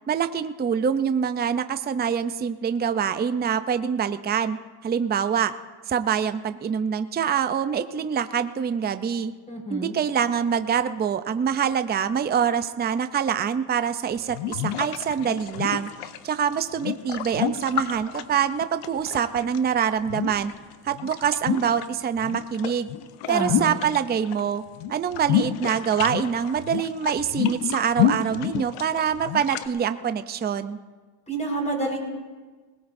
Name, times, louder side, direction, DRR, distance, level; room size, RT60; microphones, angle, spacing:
voice 1, 0.1-4.6 4.8-5.5 5.9-9.3 9.7-20.5 20.8-22.9 23.3-24.6 24.9-30.8, right 7 dB, 20° right, 11 dB, 0.5 m, -25 dB
voice 2, 9.5-9.9 23.3-23.7 31.3-32.0, right 1 dB, 15° left, 0 dB, 5.0 m, -28 dB
sound 1, 14.2-19.6 20.1-21.9 22.2-24.4 24.7-29.7, left 10 dB, 90° left, 0.8 m, -29 dB
20.0 x 18.0 x 2.6 m, 1.4 s
cardioid pair, 90°, 48 cm